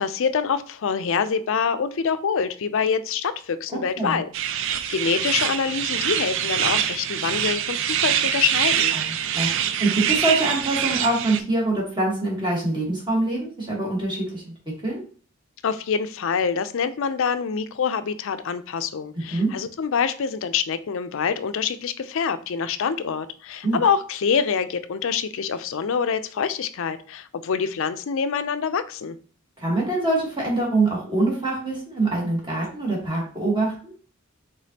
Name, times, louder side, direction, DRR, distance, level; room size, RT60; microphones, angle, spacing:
voice 1, 0.0-4.3 4.7-8.9 15.6-29.2, left 6 dB, 65° left, 12 dB, 0.4 m, -25 dB
voice 2, 3.7-4.1 8.9-9.1 9.3-14.4 14.8-15.0 19.1-19.5 23.6-23.8 29.6-33.9, right 2 dB, 25° right, -3 dB, 1.4 m, -24 dB
sound 1, 4.3-11.4, right 9 dB, 65° right, 0.4 m, -24 dB
5.0 x 3.7 x 2.8 m, 0.42 s
head